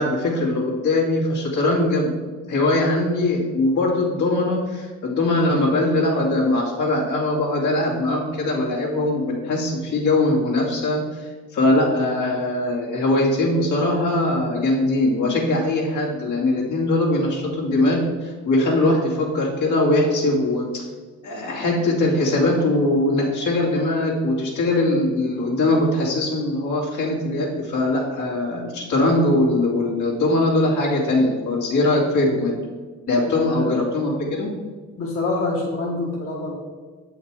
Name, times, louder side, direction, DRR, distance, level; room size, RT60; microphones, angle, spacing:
voice 1, 0.0-2.1 2.5-20.8 21.2-32.6 33.1-34.5, left 2 dB, 75° left, -3 dB, 2.7 m, -21 dB
voice 2, 33.3-33.9 35.0-36.5, left 2 dB, 50° left, -3 dB, 1.6 m, -26 dB
7.6 x 5.7 x 4.8 m, 1.4 s
cardioid pair, 90°, 30 cm